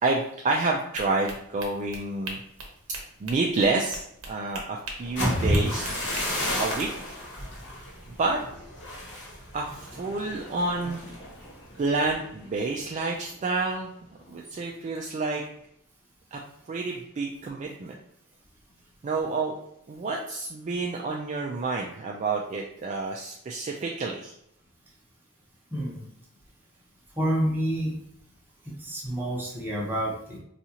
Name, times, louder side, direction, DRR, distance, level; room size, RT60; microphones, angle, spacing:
voice 1, 0.0-2.4 3.2-7.2 8.1-8.4 9.5-11.0 11.8-13.9 14.3-15.4 16.3-16.4 16.7-18.0 19.0-19.6 19.9-24.3, right 3 dB, 35° right, -1 dB, 0.3 m, -29 dB
sound 1, 0.9-6.9, right 2 dB, 65° right, 0.8 m, -40 dB
sound 2, 5.0-12.8 13.2-13.5 13.9-14.3, equal, 55° left, 1.1 m, -32 dB
voice 2, 25.7-26.0 27.2-27.9 28.7-30.4, equal, 10° right, -4 dB, 0.9 m, -28 dB
4.0 x 2.4 x 2.8 m, 0.74 s
head